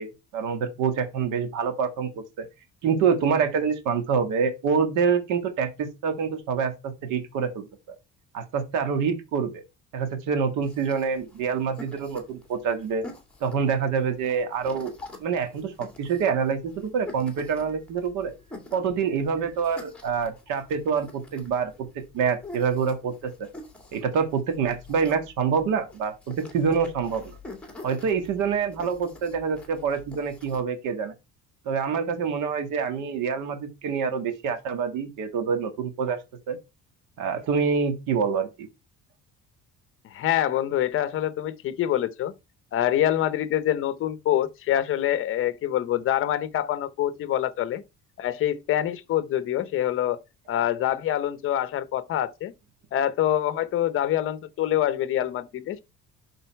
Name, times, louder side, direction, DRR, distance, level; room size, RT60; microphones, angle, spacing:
voice 1, 0.0-2.5 2.8-7.7 8.3-9.6 9.9-13.1 13.4-14.9 15.2-18.3 18.7-21.9 22.1-23.5 23.9-27.3 27.8-31.1 31.7-36.2 36.5-36.6 37.2-38.7, right 6 dB, 85° right, 1.6 m, -26 dB
sound 1, 10.6-30.6, left 2 dB, 5° left, 2.0 m, -47 dB
voice 2, 40.1-42.3 42.7-47.8 48.2-50.2 50.5-52.5 52.9-55.8, left 12 dB, 45° left, 0.8 m, -25 dB
11.5 x 3.9 x 4.5 m
cardioid pair, 170°, 30 cm